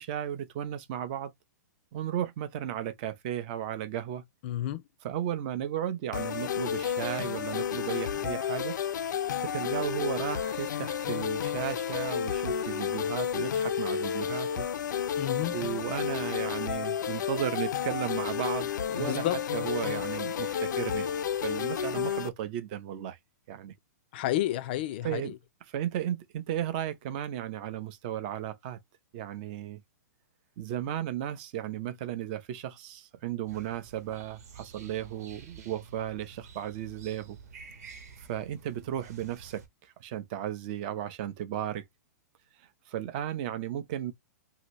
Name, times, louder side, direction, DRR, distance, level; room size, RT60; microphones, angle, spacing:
voice 1, 0.0-1.3 1.9-4.2 5.0-8.7 9.4-14.7 15.5-19.3 19.5-21.1 21.4-23.2 23.5-23.7 25.0-25.3 25.7-28.8 29.1-29.8 30.6-37.4 38.2-41.8 42.9-44.1, right 11 dB, 30° right, 0.5 m, -35 dB
voice 2, 4.4-4.8 15.2-15.6 18.9-19.4 24.1-25.3, left 14 dB, 35° left, 0.4 m, -31 dB
sound 1, 6.1-22.3, left 8 dB, 90° left, 0.5 m, -31 dB
sound 2, 33.5-39.7, right 5 dB, 60° right, 1.0 m, -50 dB
2.8 x 2.7 x 3.0 m
hypercardioid pair, 165°, 10 cm